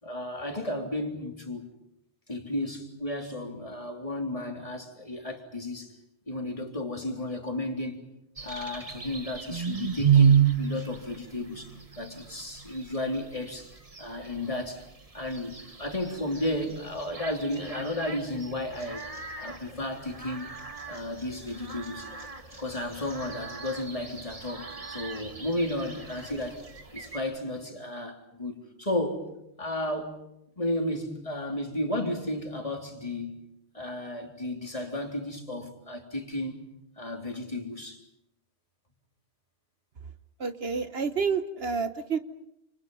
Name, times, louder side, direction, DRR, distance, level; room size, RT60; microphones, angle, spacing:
voice 1, 0.0-1.7 2.3-5.9 6.3-8.0 8.4-14.8 15.1-19.1 19.4-20.5 20.9-22.1 22.6-26.6 26.9-29.3 29.6-30.2 30.6-33.4 33.7-36.6 37.0-38.0, left 1 dB, 30° left, 3.5 m, -33 dB
sound 1, 8.4-27.2, right 7 dB, 35° right, 1.7 m, -32 dB
voice 2, 40.4-42.2, right 5 dB, 65° right, 1.4 m, -29 dB
29.5 x 28.5 x 5.5 m
omnidirectional pair, 1.1 m